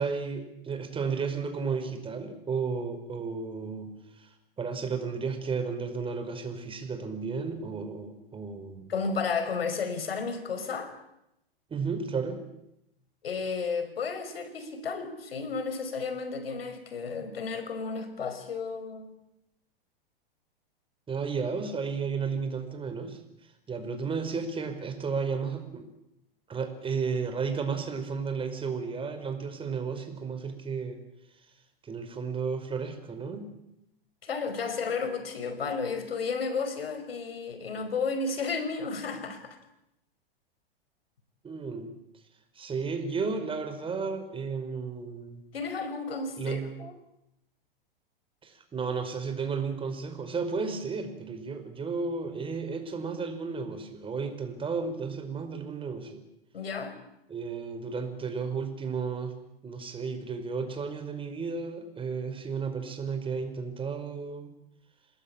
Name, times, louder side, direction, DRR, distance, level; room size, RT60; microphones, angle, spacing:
voice 1, 0.0-8.9 11.7-12.4 21.1-23.2 23.7-25.9 26.5-31.0 31.8-33.5 41.4-41.9 42.6-45.4 46.4-46.7 48.4-56.3 57.3-59.3 59.6-64.5, right 5 dB, 20° right, 7 dB, 5.2 m, -33 dB
voice 2, 8.9-10.9 13.2-19.2 34.2-39.6 45.5-46.9 56.5-56.9, left 4 dB, 80° left, 11 dB, 5.0 m, -33 dB
27.0 x 21.0 x 8.9 m, 0.84 s
hypercardioid pair, 110°, 29 cm